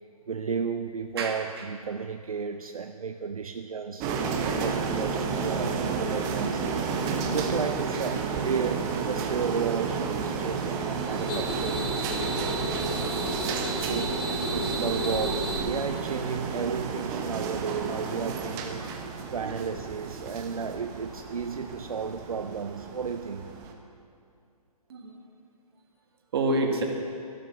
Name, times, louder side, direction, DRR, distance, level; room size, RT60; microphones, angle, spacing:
voice 1, 0.3-6.7 7.3-13.0 13.8-18.9 19.3-23.6, right 6 dB, 65° right, 8 dB, 0.6 m, -33 dB
voice 2, 1.2-1.7 7.2-7.5 7.9-8.0 14.4-14.6 18.8-18.9 19.4-19.6 24.9-25.2 26.3-26.8, right 2 dB, 40° right, 2 dB, 1.9 m, -30 dB
sound 1, 4.0-23.7, right 5 dB, 15° right, 0.8 m, -31 dB
sound 2, 10.8-15.6, right 1 dB, 60° left, 3.3 m, -32 dB
13.5 x 12.0 x 5.8 m, 2.4 s
figure-of-eight pair, 140°, 20 cm